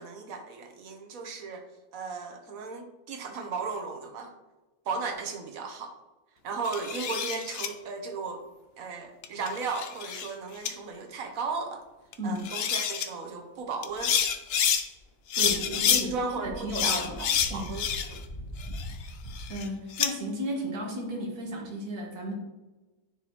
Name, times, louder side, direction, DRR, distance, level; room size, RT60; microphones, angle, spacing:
voice 1, 0.0-1.6 1.9-4.3 4.9-5.9 6.4-8.5 8.8-11.8 12.2-14.2 15.4-15.6 16.0-18.2, right 4 dB, 65° right, 4 dB, 1.3 m, -36 dB
sound 1, 6.6-7.7 9.2-10.3 10.6-10.7 12.1-12.2 12.4-13.1 13.8-14.8 15.3-16.0 16.7-18.2 18.6-20.1, left 8 dB, 65° left, 0.6 m, -28 dB
sound 2, 13.9-15.0 15.3-19.5, equal, 35° left, 1.6 m, -42 dB
voice 2, 15.3-17.2 17.5-17.7 19.0-19.1 19.5-22.3, equal, 90° right, -1 dB, 2.0 m, -34 dB
9.7 x 4.5 x 2.9 m, 1.1 s
omnidirectional pair, 1.6 m